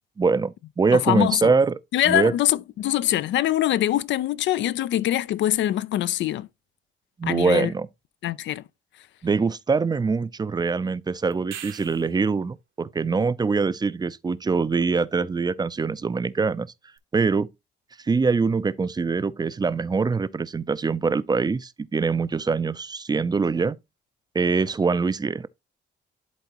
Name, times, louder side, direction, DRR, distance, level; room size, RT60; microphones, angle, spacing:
voice 1, 0.2-1.7 2.1-2.3 7.2-7.9 9.2-16.7 17.1-17.5 18.0-23.8 24.3-25.5, right 4 dB, 20° right, 0.4 m, -23 dB
voice 2, 0.9-1.5 1.9-6.5 7.2-7.7 8.2-8.6, left 13 dB, 70° left, 0.4 m, -23 dB
sound 1, 11.3-12.3 17.0-17.1, right 10 dB, 80° right, 1.3 m, -40 dB
11.5 x 3.8 x 2.9 m
cardioid pair, 90°, 20 cm